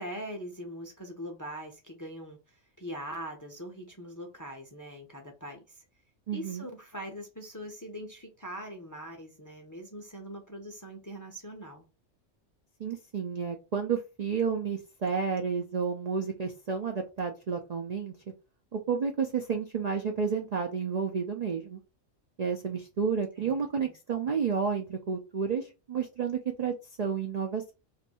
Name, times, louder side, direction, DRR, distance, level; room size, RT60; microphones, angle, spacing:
voice 1, 0.0-5.8 6.3-11.8 23.4-23.9, equal, 25° left, 0.5 m, -42 dB
voice 2, 6.3-6.7 12.8-18.2 18.7-21.8 22.4-27.7, right 6 dB, 55° right, 0.4 m, -31 dB
2.6 x 2.5 x 4.1 m
omnidirectional pair, 1.3 m